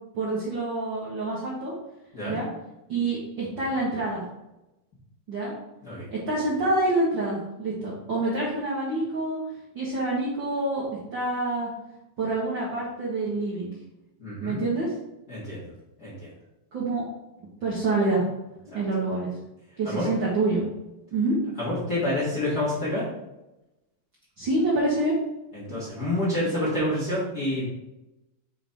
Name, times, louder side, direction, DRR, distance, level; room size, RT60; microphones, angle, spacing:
voice 1, 0.1-1.7 2.3-2.5 2.9-4.2 5.3-5.5 6.1-9.4 9.7-10.9 11.1-11.7 12.2-13.7 14.4-14.9 16.7-17.0 17.6-18.2 18.7-19.3 19.8-20.6 21.1-21.4 24.4-25.2, right 2 dB, 50° right, -7 dB, 1.7 m, -26 dB
voice 2, 14.2-14.6 15.3-15.6 16.0-16.3 18.7-18.8 19.8-20.1 21.6-23.1 25.5-27.6, left 1 dB, 40° left, -9 dB, 1.7 m, -28 dB
7.1 x 4.7 x 3.5 m, 0.96 s
omnidirectional pair, 3.7 m